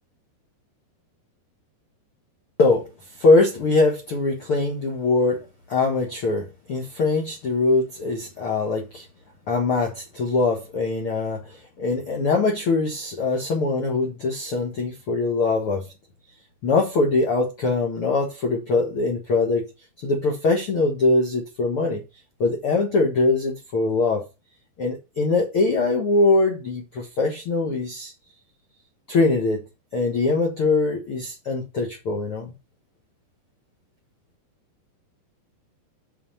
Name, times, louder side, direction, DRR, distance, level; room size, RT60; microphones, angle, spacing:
voice 1, 3.2-5.4 5.7-9.0 9.5-15.9 16.6-19.7 20.0-22.0 22.4-24.2 24.8-28.1 29.1-29.6 29.9-32.5, left 3 dB, 85° left, 1.2 m, -22 dB
7.9 x 5.5 x 5.7 m
omnidirectional pair, 5.1 m